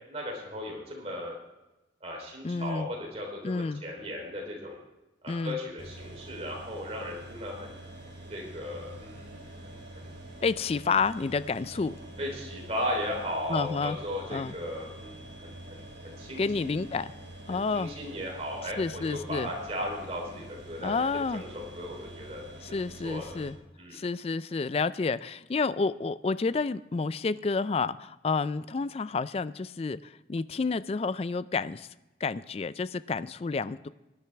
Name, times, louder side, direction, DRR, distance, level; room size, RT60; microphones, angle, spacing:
voice 1, 0.1-1.4 2.0-4.8 5.2-7.8 8.3-10.1 12.2-16.7 17.5-21.1 21.3-22.4 23.0-23.4 23.8-24.1, equal, 35° right, -1 dB, 3.5 m, -36 dB
voice 2, 2.4-2.9 3.4-3.8 5.3-5.6 10.4-11.9 13.5-14.0 14.3-14.5 16.4-17.1 17.5-17.9 18.8-19.5 20.8-21.4 22.7-23.6 23.9-31.9 32.2-33.9, left 4 dB, 30° left, 16 dB, 0.3 m, -30 dB
sound 1, 5.8-23.5, right 1 dB, 70° right, 3.7 m, -46 dB
18.5 x 11.5 x 3.4 m, 0.99 s
head